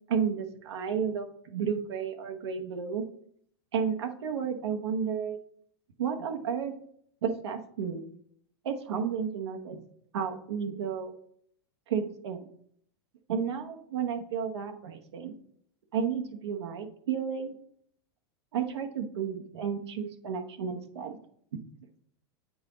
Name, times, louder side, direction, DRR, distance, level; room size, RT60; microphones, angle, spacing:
voice 1, 0.1-3.0 3.7-5.4 6.0-6.7 7.2-8.0 8.6-9.8 10.1-11.1 11.9-12.5 13.3-15.3 15.9-17.5 18.5-21.2, right 7 dB, 85° right, 4 dB, 0.9 m, -32 dB
7.9 x 4.0 x 3.8 m, 0.66 s
hypercardioid pair, 115°, 14 cm